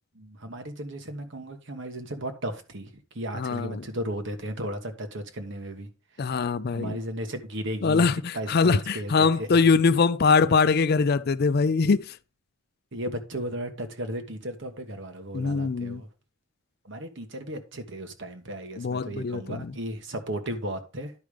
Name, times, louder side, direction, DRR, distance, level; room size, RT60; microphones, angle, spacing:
voice 1, 0.1-5.9 6.1-6.3 6.7-8.1 8.3-9.6 12.9-16.1 16.8-21.1, right 1 dB, 60° right, 1.4 m, -35 dB
voice 2, 3.3-3.8 6.2-7.0 7.8-12.2 15.3-16.0 18.8-19.7, left 4 dB, 50° left, 0.4 m, -23 dB
10.5 x 5.1 x 5.0 m
head